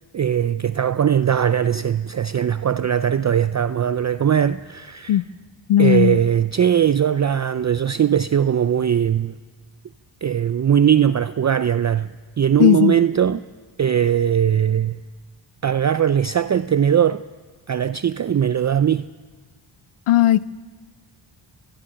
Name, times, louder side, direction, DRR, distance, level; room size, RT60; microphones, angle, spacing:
voice 1, 0.1-5.2 5.8-9.4 10.2-13.4 13.8-15.0 15.6-17.2 17.7-19.1, right 9 dB, 35° right, 0.5 m, -20 dB
voice 2, 5.7-6.2 12.6-13.0 20.1-20.4, left 12 dB, 85° left, 0.5 m, -16 dB
25.5 x 10.5 x 9.9 m
cardioid pair, 60°, 50 cm